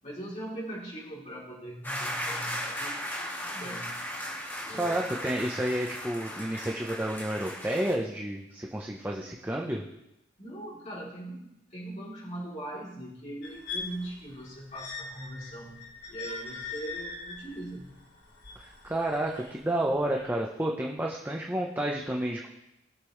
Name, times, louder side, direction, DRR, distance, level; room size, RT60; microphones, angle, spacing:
voice 1, 0.0-4.0 4.7-5.2 10.4-18.0 19.4-19.5 20.1-20.3, right 1 dB, 40° left, -6 dB, 3.6 m, -41 dB
sound 1, 1.8-8.0, equal, 10° left, 2.1 m, -36 dB
voice 2, 4.7-9.8 18.5-22.5, right 1 dB, 10° right, -1 dB, 0.9 m, -30 dB
sound 2, 13.4-19.5 20.2-20.3, left 4 dB, 70° left, 3.3 m, -41 dB
20.5 x 6.8 x 3.3 m, 0.89 s
head